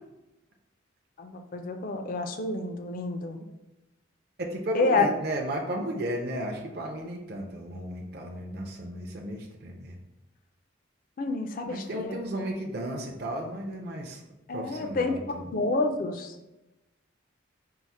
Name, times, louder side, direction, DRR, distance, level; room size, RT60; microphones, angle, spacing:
voice 1, 1.2-3.4 4.7-5.1 11.2-12.1 14.5-15.2 15.5-16.3, left 3 dB, 45° left, 6 dB, 0.4 m, -28 dB
voice 2, 4.4-10.0 11.6-14.2 14.5-15.5, right 1 dB, 55° right, 1 dB, 0.5 m, -34 dB
4.6 x 2.1 x 4.1 m, 1.0 s
head